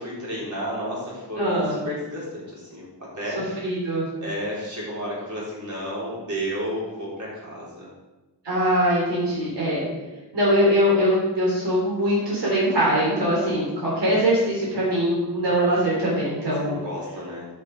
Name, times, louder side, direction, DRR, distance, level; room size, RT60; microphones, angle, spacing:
voice 1, 0.0-2.9 3.2-3.7 4.2-7.9 9.3-9.8 16.6-17.4, equal, 40° right, -6 dB, 4.0 m, -32 dB
voice 2, 1.4-1.8 3.6-4.1 8.4-9.9 10.3-16.8, equal, 75° right, -6 dB, 3.9 m, -22 dB
11.5 x 6.8 x 4.9 m, 1.1 s
wide cardioid pair, 150°, 43 cm